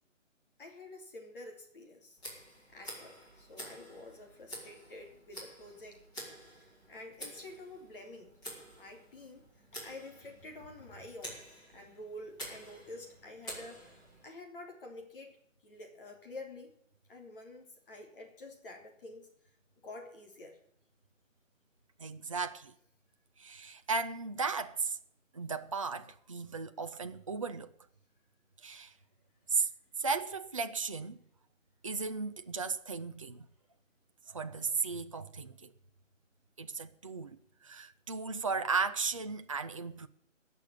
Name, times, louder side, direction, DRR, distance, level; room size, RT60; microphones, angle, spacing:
voice 1, 0.6-2.2 2.7-6.0 6.9-8.4 8.8-9.5 9.8-11.4 11.7-15.4 15.6-16.7 17.1-19.3 19.8-20.6, left 2 dB, 45° left, 3.7 m, -49 dB
Tick, 2.2-14.2, right 1 dB, 10° left, 5.0 m, -49 dB
voice 2, 22.0-22.7 23.4-25.0 25.3-27.7 28.6-28.9 29.5-29.7 30.0-31.2 31.8-33.5 34.3-35.7 36.6-40.1, right 4 dB, 25° right, 0.5 m, -35 dB
18.0 x 6.8 x 9.2 m
figure-of-eight pair, 155°, 39 cm